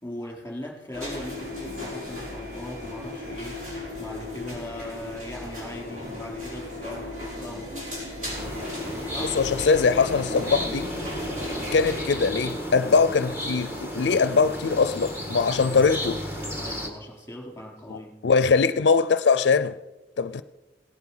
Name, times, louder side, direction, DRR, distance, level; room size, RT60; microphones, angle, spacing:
voice 1, 0.0-7.8 8.7-9.5 9.9-10.1 16.6-18.2, left 1 dB, 10° left, 3.6 m, -39 dB
sound 1, 0.9-12.0, left 2 dB, 45° right, 5.8 m, -36 dB
sound 2, 8.3-16.9, equal, 15° right, 1.8 m, -33 dB
voice 2, 9.3-10.9 11.7-16.2 17.9-18.0 18.2-19.8 20.2-20.4, left 5 dB, 75° left, 0.4 m, -22 dB
17.5 x 11.0 x 5.5 m
head